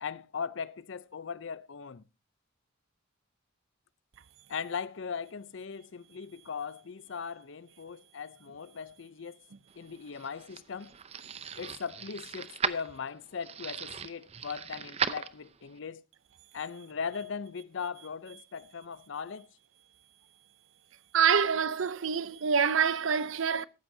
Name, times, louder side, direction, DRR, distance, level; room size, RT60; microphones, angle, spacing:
voice 1, 0.0-2.0 4.5-9.4 9.8-10.9 11.6-16.0 16.5-19.5, left 6 dB, 65° left, 0.6 m, -39 dB
sound 1, 9.8-15.8, right 6 dB, 30° right, 0.6 m, -37 dB
voice 2, 21.1-23.6, right 7 dB, 70° right, 0.6 m, -26 dB
15.0 x 13.5 x 2.7 m
head